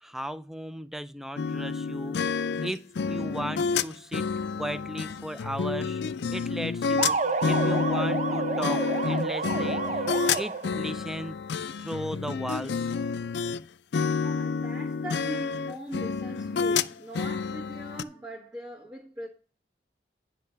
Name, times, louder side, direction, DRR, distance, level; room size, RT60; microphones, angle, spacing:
voice 1, 0.0-2.2 2.6-4.3 4.6-6.0 6.3-10.1 10.3-11.4 11.8-12.7, right 1 dB, ahead, 0.3 m, -36 dB
sound 1, 1.4-13.6 13.9-18.0, left 5 dB, 75° left, 0.4 m, -29 dB
sound 2, 7.0-10.9, right 4 dB, 40° right, 0.7 m, -29 dB
voice 2, 14.2-19.3, right 1 dB, 20° right, 1.5 m, -40 dB
9.9 x 5.4 x 5.8 m
head